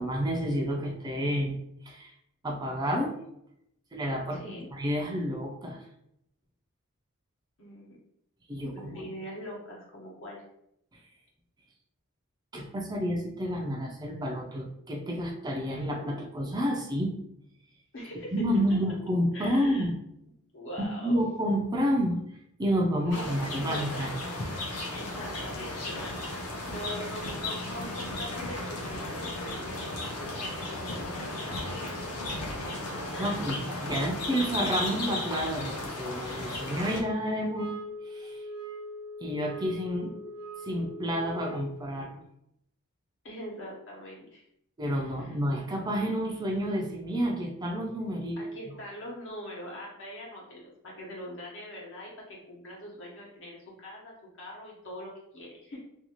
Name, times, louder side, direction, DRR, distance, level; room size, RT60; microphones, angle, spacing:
voice 1, 0.0-1.6 1.8-2.1 2.4-3.2 3.9-5.8 8.5-9.0 12.5-17.1 18.3-20.0 20.8-22.2 22.6-24.1 33.2-37.7 38.1-38.4 39.2-40.1 40.6-42.2 44.8-48.4, equal, 20° right, 0 dB, 0.4 m, -30 dB
voice 2, 4.3-4.7 7.6-8.0 8.7-10.4 17.9-18.4 19.3-19.9 20.5-21.2 23.0-23.3 23.6-24.2 24.9-32.9 33.1-33.4 33.9-34.1 43.2-44.4 45.0-45.3 48.4-55.8, equal, 60° left, -3 dB, 1.0 m, -43 dB
sound 1, 23.1-37.0, left 2 dB, 80° left, 0.7 m, -35 dB
sound 2, 37.5-41.9, right 1 dB, 20° left, 0.7 m, -41 dB
2.6 x 2.3 x 2.9 m, 0.75 s
head